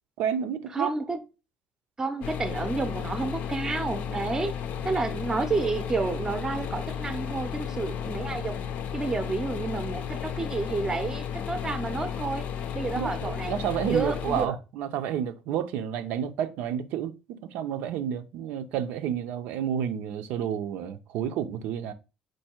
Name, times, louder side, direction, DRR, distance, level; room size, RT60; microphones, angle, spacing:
voice 1, 0.2-0.9 4.8-4.9 13.0-21.9, right 9 dB, 90° right, 0.5 m, -30 dB
voice 2, 0.7-1.2 2.0-4.5 4.8-8.6 8.9-12.5 12.7-13.5 13.8-14.5, right 3 dB, 20° right, 0.6 m, -30 dB
sound 1, 2.2-14.5, left 8 dB, 60° left, 0.5 m, -33 dB
4.5 x 2.6 x 4.3 m
cardioid pair, 155°, 3 cm